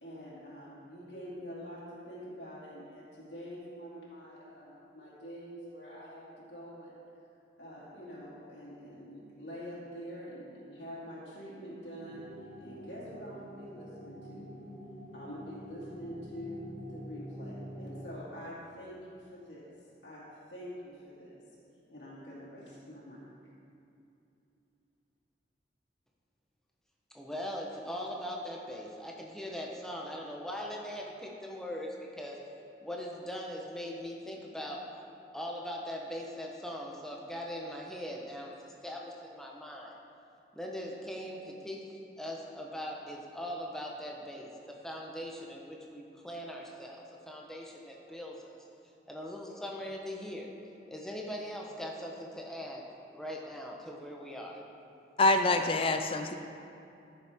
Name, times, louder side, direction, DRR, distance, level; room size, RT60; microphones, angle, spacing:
voice 1, 0.0-7.0 7.6-12.2 12.6-14.5 15.1-19.7 20.0-20.2 20.5-21.4 21.9-23.3, equal, 75° left, -9 dB, 2.6 m, -45 dB
sound 1, 12.0-18.2, equal, 45° right, 1.3 m, -46 dB
voice 2, 27.1-32.4 32.8-34.8 35.3-40.0 40.5-48.5 49.1-50.5 50.9-52.8 53.1-54.6, equal, 5° left, -1 dB, 1.0 m, -40 dB
voice 3, 55.2-56.3, left 2 dB, 30° left, 6 dB, 0.4 m, -25 dB
14.0 x 6.9 x 3.6 m, 2.6 s
head